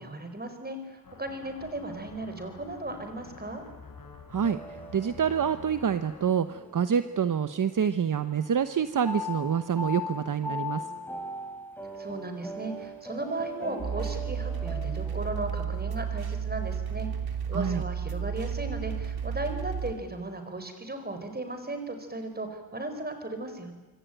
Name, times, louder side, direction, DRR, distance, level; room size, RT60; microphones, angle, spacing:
voice 1, 0.0-3.6 12.0-23.7, right 2 dB, 25° right, 7 dB, 4.7 m, -36 dB
sound 1, 1.0-6.3, left 4 dB, 70° left, 4.5 m, -48 dB
voice 2, 4.3-10.9 17.5-17.8, right 7 dB, 60° right, 11 dB, 1.0 m, -27 dB
sound 2, 4.4-7.9 8.3-15.6, left 1 dB, 5° left, 5.1 m, -40 dB
sound 3, 13.8-19.9, right 7 dB, 85° right, 3.0 m, -32 dB
26.0 x 25.0 x 9.2 m, 1.2 s
wide cardioid pair, 135°, 36 cm